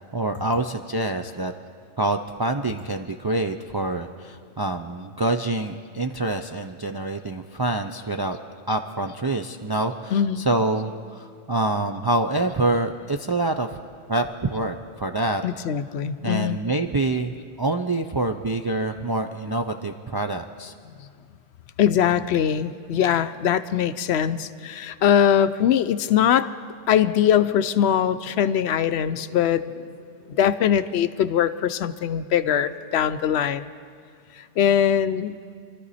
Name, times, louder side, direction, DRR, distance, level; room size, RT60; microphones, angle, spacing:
voice 1, 0.1-1.5 2.0-8.4 8.7-13.8 14.1-15.4 16.2-20.7, right 2 dB, 40° right, 5 dB, 0.3 m, -26 dB
voice 2, 10.1-10.4 15.4-16.6 21.8-26.5 26.9-29.7 30.3-33.7 34.4-35.5, left 9 dB, 70° left, 13 dB, 0.8 m, -22 dB
26.0 x 13.0 x 4.2 m, 2.3 s
omnidirectional pair, 1.2 m